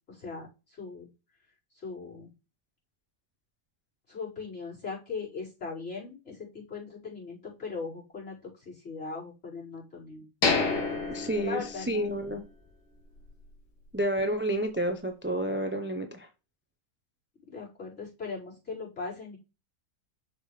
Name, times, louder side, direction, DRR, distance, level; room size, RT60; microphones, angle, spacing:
voice 1, 0.1-1.1 1.8-2.3 4.1-10.3 10.7-12.1 17.5-19.4, left 4 dB, 45° left, -8 dB, 5.2 m, -39 dB
sound 1, 10.4-12.4 12.7-12.8 13.3-13.5, left 4 dB, 80° left, 2.2 m, -29 dB
voice 2, 11.1-12.4 13.9-16.3, right 1 dB, 15° right, 6 dB, 0.4 m, -30 dB
7.3 x 6.6 x 3.3 m, 0.29 s
omnidirectional pair, 1.7 m